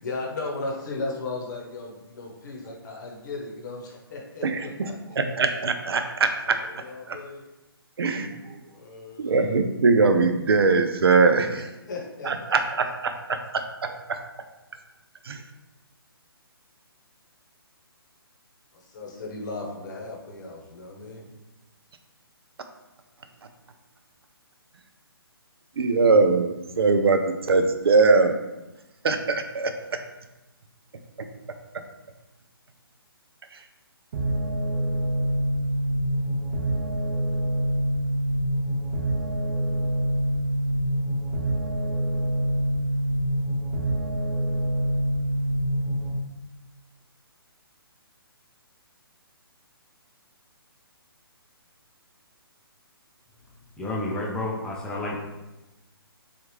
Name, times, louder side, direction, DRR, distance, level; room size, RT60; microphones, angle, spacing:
voice 1, 0.0-5.2 6.4-7.5 8.7-9.5 11.6-12.9 18.7-21.3, left 3 dB, 45° left, -1 dB, 0.9 m, -36 dB
voice 2, 4.4-4.9 5.2-6.6 7.1-7.2 8.0-8.6 9.2-11.7 12.2-14.2 15.2-15.4 25.8-28.3 29.0-30.0 31.2-31.3 31.7-31.8 33.5-33.6, right 4 dB, 75° right, 7 dB, 0.4 m, -22 dB
sound 1, 34.1-46.1, right 1 dB, 45° right, 0.8 m, -26 dB
voice 3, 53.8-55.2, left 2 dB, 5° left, -4 dB, 0.4 m, -30 dB
3.2 x 2.4 x 3.0 m, 1.0 s
figure-of-eight pair, 140°, 13 cm